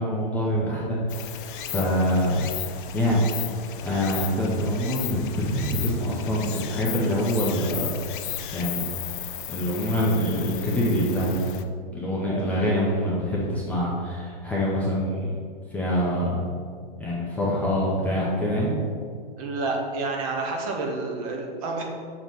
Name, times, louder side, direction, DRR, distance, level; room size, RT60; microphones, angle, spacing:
voice 1, 0.0-3.2 3.8-7.9 8.5-8.8 9.5-15.3 15.7-16.4 17.0-18.7, equal, 5° left, -8 dB, 0.6 m, -25 dB
Stream, 1.1-11.6, left 11 dB, 55° left, 0.5 m, -35 dB
voice 2, 19.4-21.8, right 3 dB, 35° right, 1 dB, 0.9 m, -29 dB
6.0 x 3.1 x 5.3 m, 2.1 s
hypercardioid pair, 150°, 30 cm